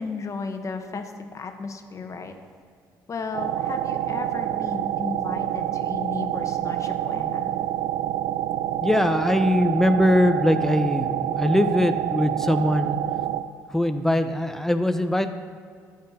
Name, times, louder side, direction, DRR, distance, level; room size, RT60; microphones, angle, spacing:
voice 1, 0.0-2.3 3.1-7.5, left 4 dB, 40° left, 6 dB, 1.2 m, -34 dB
sound 1, 3.3-13.4, right 12 dB, 80° right, 0.5 m, -27 dB
voice 2, 8.8-13.0 13.7-15.3, left 1 dB, 5° left, 8 dB, 0.9 m, -21 dB
12.5 x 7.7 x 4.3 m, 2.2 s
supercardioid pair, 70°, 8 cm